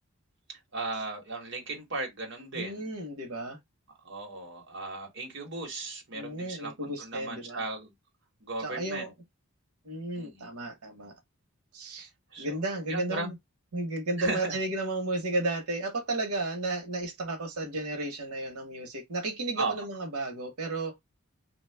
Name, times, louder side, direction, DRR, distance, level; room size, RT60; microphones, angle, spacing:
voice 1, 0.5-2.9 4.0-7.9 8.4-9.1 10.1-10.5 12.3-12.5 12.9-13.3 14.2-14.6 19.6-19.7, right 3 dB, 55° right, 1.1 m, -36 dB
voice 2, 2.5-3.6 6.1-7.6 8.6-9.1 9.8-11.1 11.7-12.1 12.4-13.3 13.7-21.0, right 2 dB, 90° right, 0.9 m, -33 dB
2.7 x 2.2 x 3.3 m
head